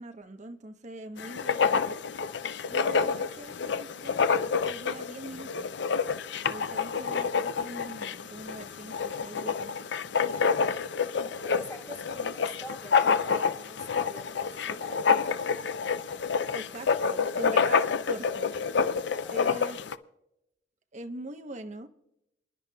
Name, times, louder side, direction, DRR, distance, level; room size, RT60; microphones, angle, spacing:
voice 1, 0.0-2.0 2.7-5.7 6.5-9.9 12.2-12.3 16.5-18.5 18.9-19.0 19.3-19.8 20.9-21.9, right 1 dB, 40° right, 7 dB, 0.9 m, -43 dB
Writing, 1.2-20.0, left 5 dB, 65° left, 0.5 m, -28 dB
voice 2, 11.2-15.4 19.2-19.4, left 1 dB, 15° left, -2 dB, 2.5 m, -46 dB
28.5 x 10.5 x 2.3 m, 0.84 s
head